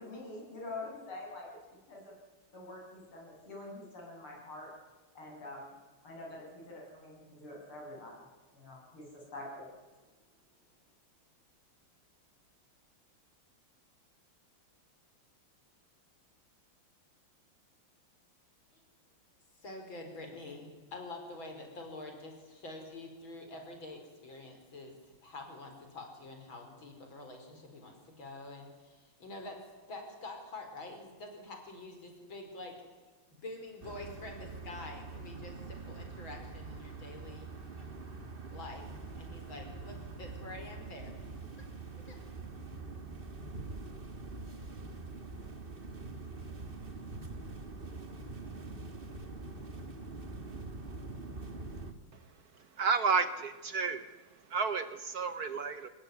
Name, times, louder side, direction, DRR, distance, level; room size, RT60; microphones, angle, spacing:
voice 1, 0.0-1.6 1.9-2.1 2.5-4.7 5.1-5.7 6.0-9.7, left 2 dB, 85° left, -2 dB, 9.0 m, -46 dB
voice 2, 19.6-25.0 25.2-29.6 29.9-32.8 33.4-37.5 38.5-38.9 39.2-41.2 42.1-42.2, left 2 dB, 65° left, 4 dB, 5.7 m, -46 dB
sound 1, 33.8-51.9, right 3 dB, 25° right, 1.9 m, -44 dB
voice 3, 52.8-54.1 54.5-55.9, right 5 dB, 55° right, 12 dB, 1.2 m, -31 dB
24.5 x 20.5 x 9.5 m, 1.3 s
omnidirectional pair, 2.3 m